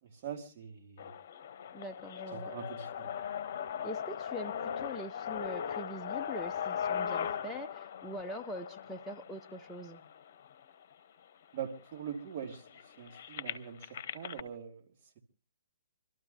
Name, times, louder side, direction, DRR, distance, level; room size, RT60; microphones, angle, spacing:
voice 1, 0.0-1.1 2.3-3.1 11.5-14.8, right 8 dB, 45° right, 3 dB, 2.7 m, -43 dB
sound 1, 1.0-10.9 11.6-11.7 11.9-14.4, left 8 dB, 50° left, 0.9 m, -39 dB
voice 2, 1.7-2.5 3.8-10.0, equal, ahead, 0 dB, 0.7 m, -43 dB
27.0 x 12.5 x 2.8 m, 0.33 s
figure-of-eight pair, 125°, 0 cm